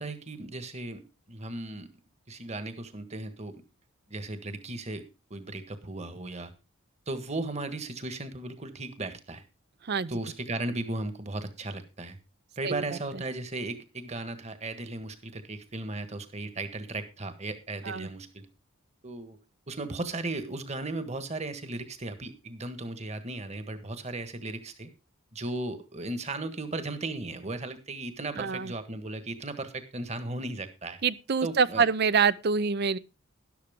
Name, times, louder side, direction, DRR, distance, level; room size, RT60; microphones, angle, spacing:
voice 1, 0.0-1.9 2.3-3.6 4.1-6.5 7.1-9.4 10.1-12.2 12.6-18.5 19.0-19.4 19.7-24.9 25.3-31.0 31.4-31.9, right 2 dB, 30° right, 1.6 m, -36 dB
voice 2, 28.4-28.7 31.0-33.0, right 5 dB, 50° right, 0.5 m, -26 dB
12.5 x 11.5 x 3.7 m
head